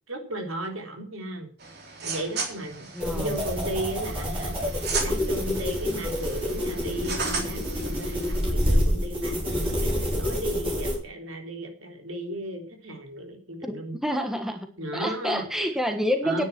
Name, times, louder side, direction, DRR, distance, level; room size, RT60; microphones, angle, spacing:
voice 1, 0.1-1.5 2.0-14.0 14.8-15.5 16.2-16.5, right 1 dB, 75° right, 4 dB, 3.7 m, -35 dB
sound 1, 1.6-8.4, right 4 dB, 50° right, 3.6 m, -36 dB
voice 2, 2.9-3.4 13.6-14.7 14.9-16.4, equal, ahead, 6 dB, 1.3 m, -28 dB
sound 2, 3.0-11.0, equal, 25° right, 6.0 m, -27 dB
10.5 x 9.8 x 6.0 m, 0.41 s
head